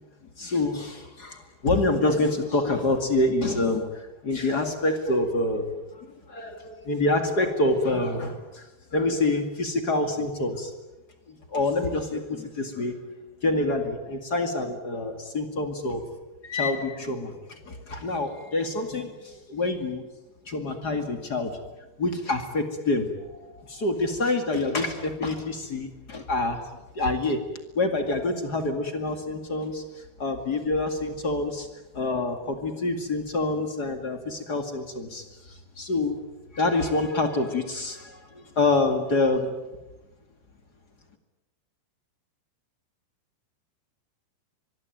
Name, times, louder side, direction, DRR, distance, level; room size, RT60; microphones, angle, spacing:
voice 1, 0.4-10.7 11.3-13.1 13.4-16.1 16.4-20.1 20.4-21.5 22.0-26.6 26.9-27.4 27.7-31.7 31.9-36.2 36.5-39.5, left 2 dB, 40° left, 6 dB, 1.5 m, -27 dB
25.0 x 22.5 x 9.2 m, 1.1 s
omnidirectional pair, 5.2 m